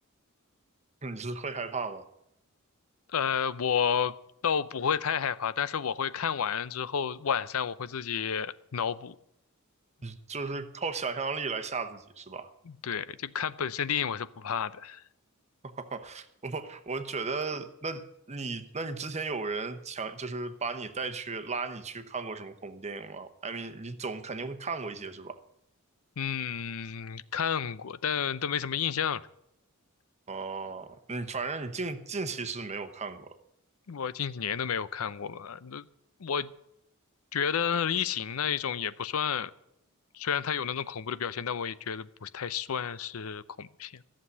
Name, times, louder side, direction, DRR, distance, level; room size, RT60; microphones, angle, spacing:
voice 1, 1.0-2.1 10.0-12.5 15.6-25.4 30.3-33.3, right 4 dB, 30° right, 9 dB, 1.0 m, -35 dB
voice 2, 3.1-4.1 4.4-9.2 12.7-15.0 26.2-29.3 33.9-35.9 36.2-36.5 37.3-39.5 40.1-44.0, left 7 dB, 70° left, 16 dB, 0.6 m, -31 dB
14.0 x 7.5 x 9.6 m, 0.78 s
head